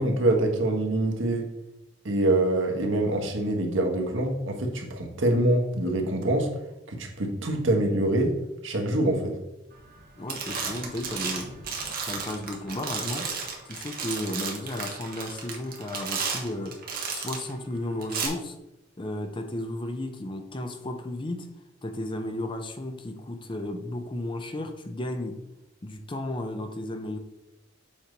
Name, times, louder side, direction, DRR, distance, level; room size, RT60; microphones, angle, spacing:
voice 1, 0.0-1.5 2.0-6.5 6.9-8.4 8.6-9.4, right 1 dB, 80° right, 2 dB, 1.2 m, -25 dB
sound 1, 9.8-10.0 10.3-17.5 18.0-18.3, right 5 dB, 50° right, 1.2 m, -33 dB
voice 2, 10.2-11.5 12.1-13.3 13.7-16.8 17.1-18.6 19.0-21.5 21.8-25.4 25.8-27.2, left 1 dB, 25° left, 7 dB, 0.6 m, -34 dB
7.2 x 3.2 x 5.1 m, 0.90 s
head